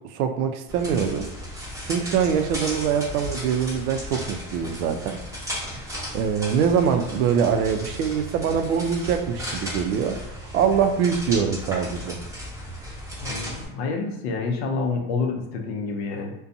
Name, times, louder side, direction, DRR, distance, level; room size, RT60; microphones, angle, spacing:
voice 1, 0.1-1.3 1.8-5.2 6.1-10.2 10.5-12.2, right 7 dB, 75° right, 7 dB, 0.5 m, -23 dB
sound 1, 0.7-13.6, equal, 5° right, 0.7 m, -35 dB
voice 2, 13.2-16.3, left 4 dB, 45° left, 2 dB, 0.5 m, -28 dB
2.5 x 2.2 x 2.5 m, 0.91 s
supercardioid pair, 160°, 44 cm